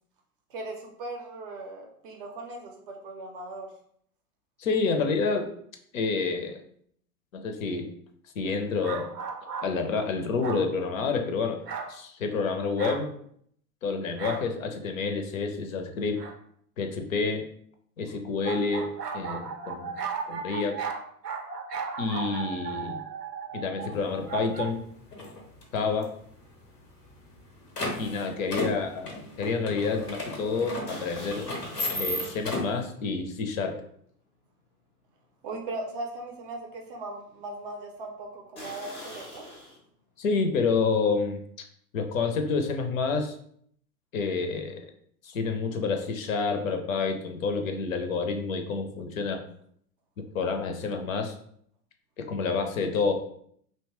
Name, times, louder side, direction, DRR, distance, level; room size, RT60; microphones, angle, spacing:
voice 1, 0.5-3.7 28.4-28.9 35.4-39.5, right 2 dB, 35° right, 1 dB, 0.5 m, -39 dB
voice 2, 4.6-5.5 5.9-6.6 7.3-7.9 8.4-9.1 9.6-11.6 11.9-13.1 13.8-16.2 16.8-17.4 18.0-20.0 20.2-20.8 22.0-23.0 23.5-24.8 25.7-26.1 28.0-31.5 31.9-33.7 40.2-41.4 41.9-43.3 44.1-44.8 45.2-49.4 50.2-51.3 52.2-53.1, left 4 dB, 60° left, 5 dB, 0.6 m, -28 dB
sound 1, 8.8-9.7 10.4-10.7 11.7-11.9 12.8-13.0 14.2-14.5 16.2-16.4 18.4-24.7, right 6 dB, 90° right, 0.5 m, -35 dB
sound 2, 23.8-24.0 24.2-28.8 29.1-29.4 29.8-29.9 30.9-32.6 33.1-33.2 33.9-34.0 34.5-34.6 38.6-39.8, left 1 dB, 15° left, 0.5 m, -46 dB
sound 3, 23.9-24.0 24.5-24.8 25.1-26.0 26.3-26.4 26.6-26.7 27.2-32.8, left 1 dB, 90° left, 0.8 m, -34 dB
2.7 x 2.2 x 2.9 m, 0.65 s
figure-of-eight pair, 100°, 46 cm